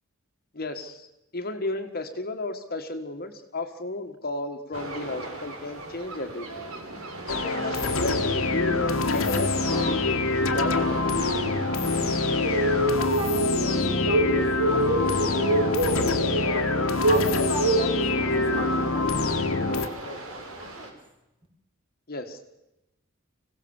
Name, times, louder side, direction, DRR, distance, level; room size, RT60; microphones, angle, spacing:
voice 1, 0.5-1.1 1.3-6.7 7.3-11.4 22.1-22.4, left 2 dB, 45° left, 6 dB, 1.6 m, -33 dB
sound 1, 4.7-20.9, right 1 dB, 80° right, 4.3 m, -29 dB
sound 2, 7.3-19.9, left 3 dB, 70° left, 1.4 m, -25 dB
voice 2, 13.0-16.2 16.5-20.9, right 1 dB, 25° right, 1 dB, 4.6 m, -39 dB
26.0 x 17.0 x 7.2 m, 0.92 s
head